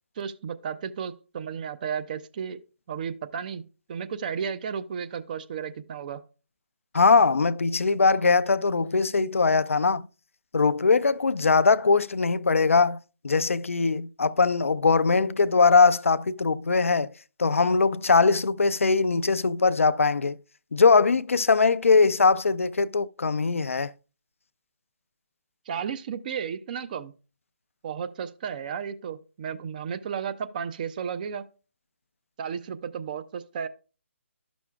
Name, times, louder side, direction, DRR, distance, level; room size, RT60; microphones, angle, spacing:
voice 1, 0.2-2.6 2.9-3.6 3.9-6.2 25.7-27.1 27.8-31.4 32.4-33.7, right 7 dB, 40° right, 0.5 m, -33 dB
voice 2, 6.9-10.1 10.5-13.0 13.2-17.1 17.4-20.4 20.7-23.9, left 4 dB, 80° left, 0.4 m, -21 dB
12.0 x 6.1 x 2.3 m
figure-of-eight pair, 145°, 7 cm